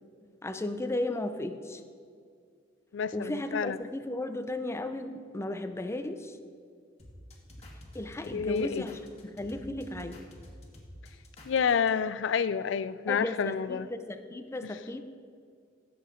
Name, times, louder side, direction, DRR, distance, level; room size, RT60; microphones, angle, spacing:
voice 1, 0.4-1.8 3.1-6.4 7.9-10.2 13.1-15.0, left 1 dB, 15° left, 8 dB, 0.5 m, -35 dB
voice 2, 2.9-3.8 8.2-8.8 11.5-13.9 14.6-14.7, left 6 dB, 70° left, 15 dB, 0.4 m, -29 dB
sound 1, 7.0-11.9, left 1 dB, 35° left, 1.8 m, -49 dB
15.5 x 7.7 x 3.8 m, 2.3 s
head